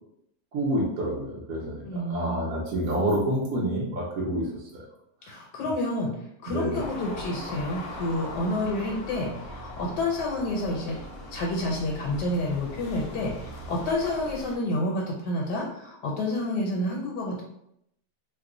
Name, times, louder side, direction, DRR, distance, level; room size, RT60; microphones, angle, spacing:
voice 1, 0.5-4.4 6.5-6.8, right 1 dB, 65° right, -5 dB, 1.0 m, -28 dB
voice 2, 1.9-2.4 5.3-6.1 6.4-11.0 11.3-17.4, left 1 dB, 80° left, -1 dB, 1.2 m, -29 dB
sound 1, 6.8-14.6, left 1 dB, 50° left, 0.8 m, -40 dB
2.9 x 2.1 x 3.7 m, 0.77 s
omnidirectional pair, 1.8 m